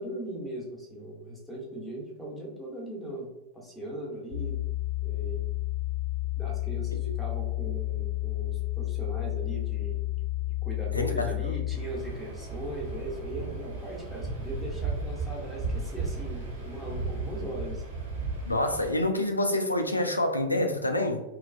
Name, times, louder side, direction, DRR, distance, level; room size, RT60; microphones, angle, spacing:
voice 1, 0.0-4.6 5.0-5.4 6.3-10.0 10.6-17.8, right 1 dB, 5° left, -3 dB, 0.9 m, -39 dB
sound 1, 4.3-11.7, left 17 dB, 50° left, 0.7 m, -31 dB
voice 2, 10.9-11.6 18.5-21.2, left 1 dB, 85° left, 5 dB, 0.3 m, -27 dB
Waves surf, 11.7-19.0, right 3 dB, 60° right, 1.1 m, -35 dB
3.1 x 2.3 x 2.5 m, 0.96 s
figure-of-eight pair, 90°, 0 cm